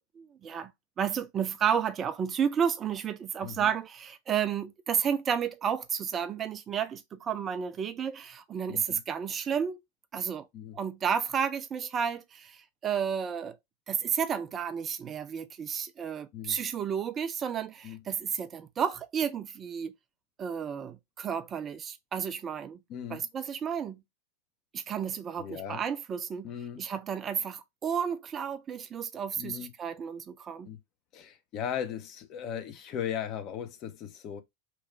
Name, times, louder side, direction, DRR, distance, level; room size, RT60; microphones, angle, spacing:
voice 1, 0.2-0.7 1.0-9.8 10.1-10.5 10.7-13.6 13.9-19.9 20.4-22.8 23.1-24.0 24.7-26.5 26.8-30.7, right 7 dB, 25° right, 0.4 m, -32 dB
voice 2, 8.7-9.0 10.5-10.8 16.3-16.6 17.8-18.0 22.9-23.3 25.4-25.8 26.4-26.9 29.4-29.7 30.6-30.8 31.1-34.4, left 9 dB, 35° left, 0.6 m, -37 dB
3.1 x 2.3 x 4.3 m
figure-of-eight pair, 90°, 0 cm